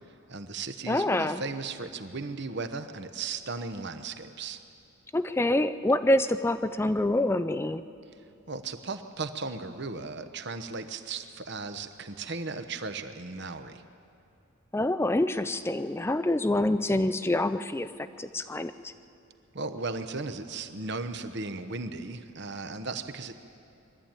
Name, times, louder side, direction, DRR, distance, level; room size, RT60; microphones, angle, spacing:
voice 1, 0.3-4.6 8.5-13.8 19.5-23.3, right 3 dB, 50° right, 9 dB, 1.0 m, -36 dB
voice 2, 0.9-1.4 5.1-7.8 14.7-17.9 18.2-18.9, left 1 dB, 10° left, 12 dB, 0.4 m, -26 dB
22.5 x 13.0 x 8.9 m, 2.6 s
head